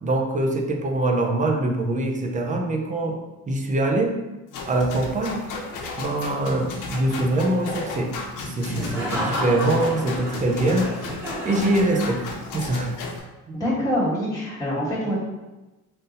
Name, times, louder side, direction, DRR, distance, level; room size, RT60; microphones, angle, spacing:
voice 1, 0.0-4.2 4.7-5.4 6.0-8.1 8.4-10.9 11.4-12.2 12.5-13.0 13.5-13.6, right 2 dB, 25° right, 2 dB, 0.5 m, -23 dB
sound 1, 4.5-13.2, left 3 dB, 80° left, 0.8 m, -34 dB
Laughter, 8.6-12.5, equal, 10° right, 1.5 m, -31 dB
voice 2, 13.5-15.2, equal, 10° left, -9 dB, 1.4 m, -25 dB
3.8 x 2.7 x 3.9 m, 1.1 s
cardioid pair, 125°, 31 cm